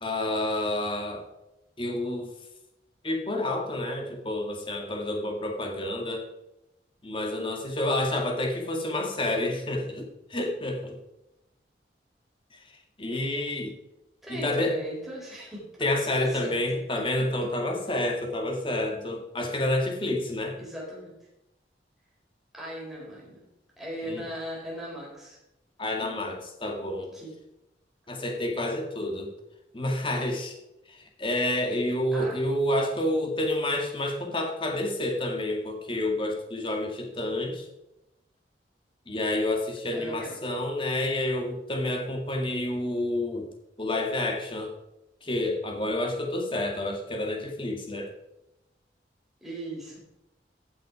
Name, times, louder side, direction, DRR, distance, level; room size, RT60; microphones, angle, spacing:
voice 1, 0.0-1.2 1.8-2.3 3.0-6.2 7.0-11.0 13.0-13.7 14.3-14.7 15.8-20.6 24.1-24.2 25.8-27.1 28.1-29.3 29.7-30.5 30.9-37.6 39.1-43.5 43.8-44.7 45.2-48.1, left 1 dB, 30° left, 2 dB, 2.0 m, -29 dB
voice 2, 14.2-16.8 17.2-17.3 17.9-18.1 20.6-21.1 22.5-23.4 23.8-25.4 27.1-27.3 32.1-32.4 39.9-40.4 49.4-50.0, right 1 dB, ahead, -5 dB, 4.3 m, -38 dB
15.5 x 6.3 x 4.9 m, 0.91 s
head